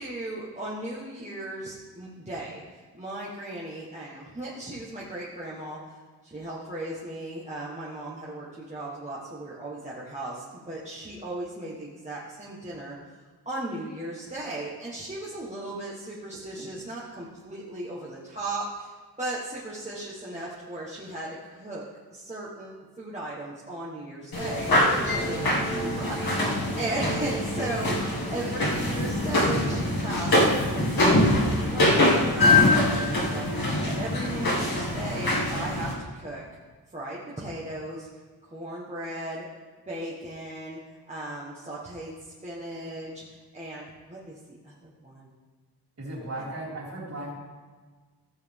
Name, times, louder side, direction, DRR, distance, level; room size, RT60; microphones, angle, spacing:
voice 1, 0.0-2.6 2.9-5.8 6.2-12.9 13.4-18.9 19.2-21.8 22.1-24.7 25.0-30.4 30.7-36.4 36.9-38.1 38.5-39.4 39.9-40.8 41.1-42.2 42.4-45.3, right 1 dB, 15° right, -7 dB, 1.3 m, -36 dB
sound 1, 24.3-35.9, left 1 dB, 60° left, 2.1 m, -24 dB
voice 2, 46.0-47.3, right 1 dB, 40° right, -5 dB, 3.6 m, -36 dB
15.5 x 7.6 x 3.6 m, 1.4 s
wide cardioid pair, 175°, 41 cm